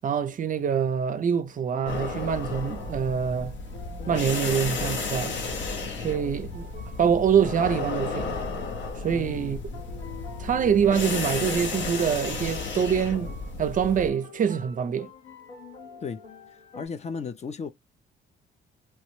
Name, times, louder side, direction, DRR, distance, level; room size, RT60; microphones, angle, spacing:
voice 1, 0.0-3.5 4.1-5.3 6.0-6.7 7.0-8.4 9.0-9.8 10.4-13.3 13.6-15.1, right 7 dB, 40° right, 0.4 m, -25 dB
sound 1, 1.5-16.9, left 4 dB, 90° left, 1.2 m, -47 dB
sound 2, 1.9-14.1, left 3 dB, 70° left, 0.8 m, -33 dB
voice 2, 9.1-9.6 16.0-17.7, left 5 dB, 35° left, 0.4 m, -36 dB
3.1 x 2.1 x 3.0 m
cardioid pair, 90°, 20 cm